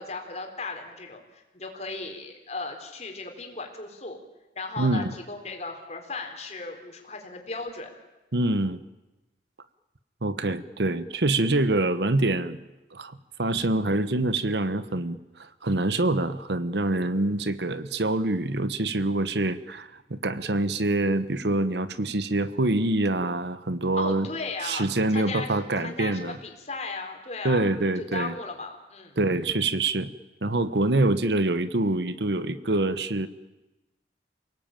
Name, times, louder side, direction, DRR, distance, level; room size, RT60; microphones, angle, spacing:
voice 1, 0.0-4.2 4.6-7.9 24.0-24.9 25.1-27.7 28.0-29.1, left 3 dB, 40° left, 3 dB, 4.2 m, -36 dB
voice 2, 4.8-5.1 8.3-8.8 10.2-12.6 12.9-24.3 24.6-26.4 27.4-28.3 29.2-30.1 30.4-33.3, right 2 dB, 70° right, 14 dB, 1.2 m, -25 dB
28.5 x 18.5 x 9.1 m, 1.1 s
head